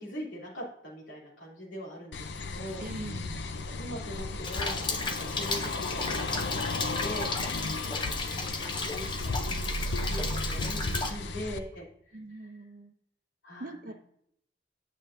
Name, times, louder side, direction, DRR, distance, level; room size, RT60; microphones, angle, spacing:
voice 1, 0.0-2.9 3.8-6.5 6.7-9.8 10.1-11.9 12.3-12.6 13.4-13.9, equal, 85° left, -3 dB, 3.0 m, -42 dB
sound 1, 2.1-11.6, left 2 dB, 65° left, 0.5 m, -34 dB
voice 2, 2.8-3.4 12.1-12.9 13.6-13.9, right 2 dB, 45° right, 8 dB, 0.7 m, -42 dB
Rain, 4.4-11.1, left 3 dB, 25° left, 0.6 m, -34 dB
8.6 x 7.4 x 2.6 m, 0.73 s
head